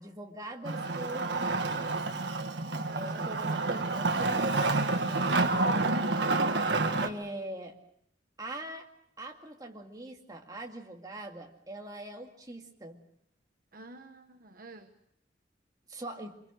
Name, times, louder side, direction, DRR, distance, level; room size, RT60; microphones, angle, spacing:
voice 1, 0.0-1.9 2.9-6.0 7.0-7.8 8.4-8.9 9.2-13.0 15.9-16.3, right 1 dB, 20° right, 2 dB, 2.2 m, -42 dB
Wood, 0.6-7.1, right 3 dB, 70° right, 1.6 m, -29 dB
voice 2, 2.9-3.3 6.7-7.1 13.7-14.9, right 3 dB, 50° right, 6 dB, 1.1 m, -47 dB
25.5 x 23.0 x 6.3 m, 0.75 s
head